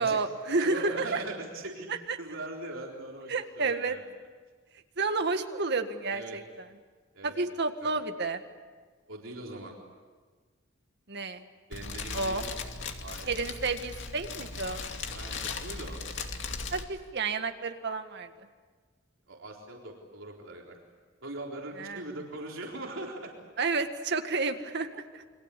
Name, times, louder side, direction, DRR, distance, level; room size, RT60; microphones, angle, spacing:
voice 1, 0.0-1.2 1.9-2.0 3.3-4.0 5.0-6.4 7.2-8.4 11.1-11.4 12.1-12.5 13.3-14.8 16.7-18.3 21.8-22.0 23.6-25.2, right 3 dB, 55° right, 7 dB, 1.9 m, -30 dB
voice 2, 0.6-1.9 2.2-4.0 6.1-6.4 7.1-7.9 9.1-9.7 11.7-12.4 13.0-13.3 15.1-16.0 19.3-20.8 21.2-23.3, right 2 dB, 70° right, -1 dB, 4.0 m, -41 dB
Fire, 11.7-16.8, left 4 dB, 65° left, 2.5 m, -38 dB
29.0 x 24.0 x 8.5 m, 1.5 s
head